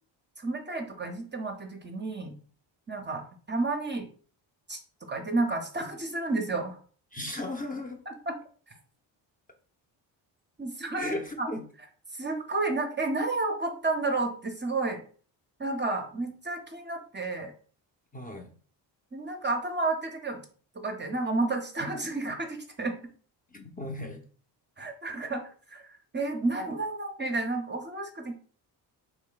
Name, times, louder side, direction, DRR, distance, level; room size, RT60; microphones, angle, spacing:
voice 1, 0.4-2.4 2.9-4.1 4.7-4.8 5.1-6.8 8.1-8.2 10.6-11.5 12.1-15.0 15.6-17.5 19.1-20.4 20.8-23.0 24.8-25.9 26.1-28.4, right 3 dB, 25° right, 4 dB, 0.6 m, -31 dB
voice 2, 7.1-8.0 11.0-11.7 18.1-18.5 23.5-24.2, left 1 dB, 20° left, 2 dB, 0.6 m, -36 dB
3.2 x 2.2 x 3.8 m, 0.43 s
supercardioid pair, 65°, 47 cm